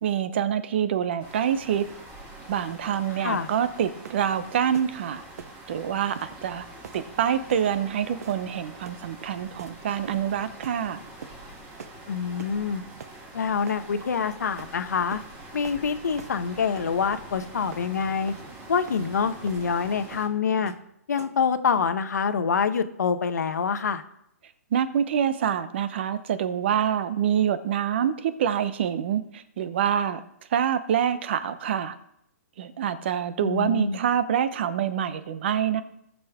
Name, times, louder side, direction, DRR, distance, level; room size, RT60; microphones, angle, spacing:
voice 1, 0.0-1.8 2.5-5.2 5.7-6.7 6.9-11.0 24.7-30.2 30.5-32.0 32.6-35.8, right 9 dB, 40° right, 13 dB, 0.7 m, -26 dB
sound 1, 1.2-20.3, right 1 dB, 20° right, 2.3 m, -45 dB
sound 2, 4.0-4.3 4.7-4.9 5.4-5.6 6.1-6.3 6.8-7.0 7.5-7.7 8.2-8.5 8.8-9.1 9.6-9.8 10.1-10.3 10.6-10.8 11.2-11.4 11.8-12.0 12.4-12.6 13.0-13.2 13.7-13.8 14.6-14.7 15.1-15.3 15.6-15.8 16.2-16.4 16.7-17.3 17.7-17.9 18.3-18.4 18.9-19.0 19.5-19.7 20.1-20.3 20.7-20.9 21.2-21.5, right 6 dB, 70° right, 0.8 m, -44 dB
voice 2, 12.1-12.8 13.3-15.2 15.5-18.3 18.7-20.7 21.1-24.0 33.4-34.0, left 6 dB, 85° left, 9 dB, 1.0 m, -26 dB
17.0 x 6.6 x 3.6 m, 0.77 s
hypercardioid pair, 165°, 9 cm